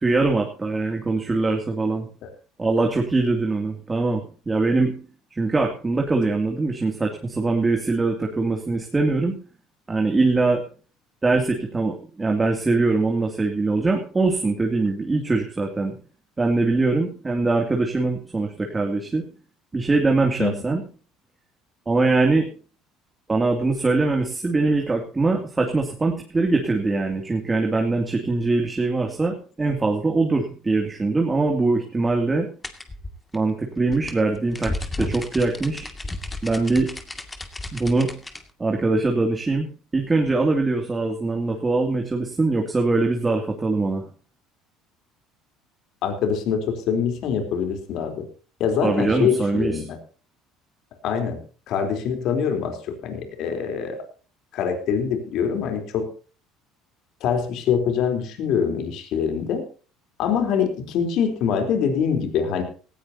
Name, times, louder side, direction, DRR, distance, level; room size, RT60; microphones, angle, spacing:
voice 1, 0.0-2.1 2.6-5.0 5.3-9.4 9.9-10.6 11.2-16.0 16.4-19.3 19.7-20.8 21.9-22.5 23.3-32.5 33.3-35.9 36.4-37.0 37.7-38.2 38.6-39.7 39.9-44.0 48.8-49.9, right 3 dB, 20° right, 2 dB, 2.6 m, -22 dB
sound 1, 32.6-38.4, left 2 dB, 15° left, 2.3 m, -33 dB
voice 2, 46.0-48.3 48.6-50.0 51.0-51.4 51.7-54.1 54.5-56.1 57.2-59.6 60.2-62.6, left 7 dB, 65° left, 6 dB, 3.7 m, -24 dB
18.0 x 15.0 x 2.8 m, 0.38 s
supercardioid pair, 85°, 0 cm